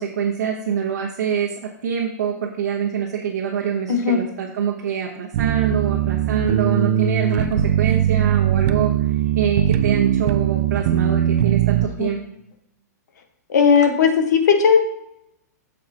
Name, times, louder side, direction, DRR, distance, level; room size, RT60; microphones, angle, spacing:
voice 1, 0.0-12.2, right 7 dB, 70° right, -1 dB, 1.0 m, -25 dB
voice 2, 3.9-4.2 12.0-12.1 13.5-14.8, left 6 dB, 75° left, 5 dB, 1.3 m, -16 dB
sound 1, 5.3-11.9, right 10 dB, 50° right, 0.5 m, -20 dB
7.6 x 6.5 x 2.9 m, 0.79 s
hypercardioid pair, 150°, 9 cm